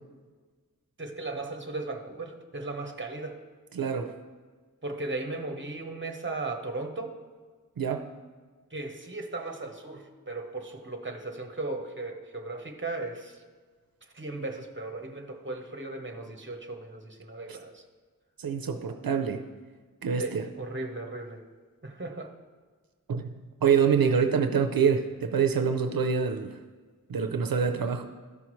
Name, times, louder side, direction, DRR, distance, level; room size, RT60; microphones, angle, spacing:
voice 1, 1.0-3.4 4.8-7.1 8.7-13.4 14.1-17.8 20.2-21.4 21.8-22.3, right 2 dB, 35° right, 5 dB, 0.9 m, -36 dB
voice 2, 3.7-4.1 7.8-8.1 17.5-17.6 18.4-19.5 20.0-20.5 23.1-23.3 23.6-26.6 27.1-28.0, right 6 dB, 85° right, 7 dB, 0.5 m, -26 dB
13.5 x 5.7 x 3.1 m, 1.5 s
wide cardioid pair, 50°, 34 cm